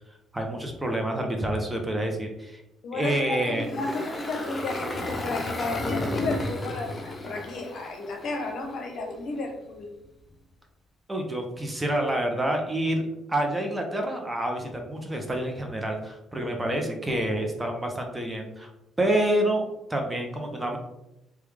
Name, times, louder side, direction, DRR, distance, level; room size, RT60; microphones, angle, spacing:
voice 1, 0.3-2.6 2.9-3.7 11.1-13.0 13.3-18.7 19.0-20.8, right 1 dB, 15° right, 2 dB, 0.7 m, -28 dB
voice 2, 2.8-9.9 16.4-16.5, left 3 dB, 60° left, 3 dB, 0.7 m, -33 dB
Engine, 3.5-8.7, left 1 dB, 25° left, 0.6 m, -32 dB
3.0 x 2.3 x 3.3 m, 0.88 s
supercardioid pair, 60°, 0 cm